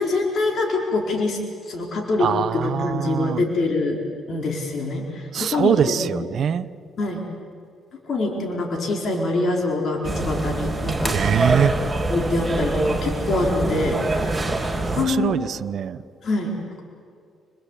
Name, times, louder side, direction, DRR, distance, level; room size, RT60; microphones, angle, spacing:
voice 1, 0.0-4.0 4.3-6.1 7.0-7.3 7.9-11.2 12.1-14.3 14.8-15.3 16.2-16.8, left 2 dB, 55° left, 0 dB, 4.7 m, -25 dB
voice 2, 2.2-3.4 5.3-6.7 11.1-11.7 14.8-16.0, right 8 dB, 60° right, 14 dB, 0.9 m, -23 dB
sound 1, 10.0-15.1, right 2 dB, 10° right, 4.7 m, -24 dB
29.5 x 21.5 x 8.4 m, 2.4 s
cardioid pair, 90°, 0 cm